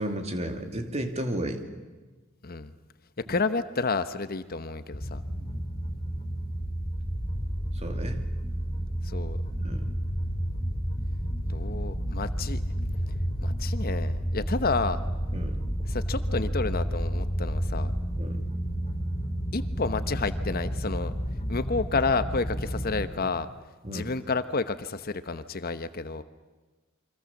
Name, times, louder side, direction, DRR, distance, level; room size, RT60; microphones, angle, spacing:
voice 1, 0.0-1.6 3.3-3.4 5.3-5.6 7.7-8.2 9.6-9.8 15.3-15.6 18.2-18.4 23.8-24.1, right 1 dB, 30° right, 6 dB, 2.6 m, -33 dB
voice 2, 3.3-5.2 9.0-9.4 11.5-12.6 13.4-15.0 15.9-17.9 19.5-21.1 21.5-23.5 23.9-26.2, left 4 dB, 45° left, 12 dB, 1.0 m, -30 dB
sound 1, 4.9-23.1, equal, 30° left, 5.3 m, -31 dB
28.0 x 24.5 x 7.2 m, 1.3 s
head